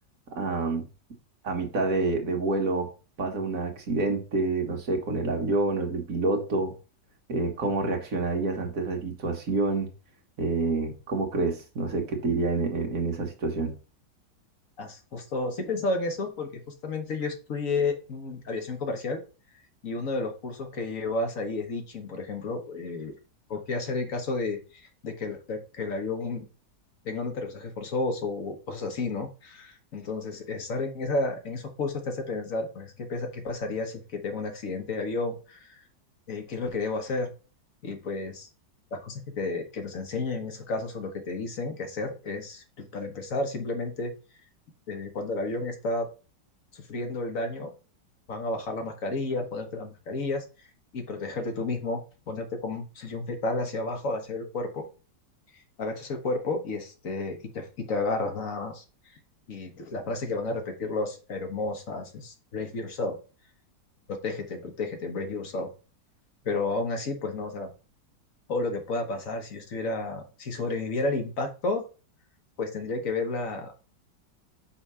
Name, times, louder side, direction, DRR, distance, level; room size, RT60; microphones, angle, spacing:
voice 1, 0.4-0.8 1.4-2.9 3.2-6.7 7.3-9.9 10.4-13.7, right 3 dB, 50° right, 2 dB, 1.8 m, -27 dB
voice 2, 14.8-19.2 19.8-23.1 23.5-26.4 27.0-35.8 36.3-37.3 37.8-38.5 38.9-44.1 44.9-46.0 46.9-47.7 48.3-50.4 50.9-54.8 55.5-58.8 59.5-63.2 64.1-65.7 66.4-67.7 68.5-71.8 72.6-73.7, left 3 dB, 50° left, 4 dB, 1.6 m, -32 dB
5.8 x 4.4 x 5.5 m, 0.34 s
omnidirectional pair, 1.9 m